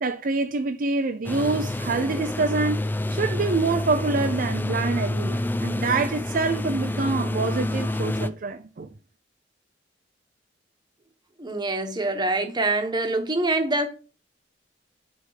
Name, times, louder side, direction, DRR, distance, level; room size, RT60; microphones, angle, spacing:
voice 1, 0.0-8.9, right 3 dB, 50° right, 0.5 m, -26 dB
sound 1, 1.2-8.3, left 1 dB, 10° left, 0.4 m, -28 dB
voice 2, 11.4-13.9, right 2 dB, 25° right, 1.3 m, -25 dB
8.1 x 3.6 x 6.4 m
head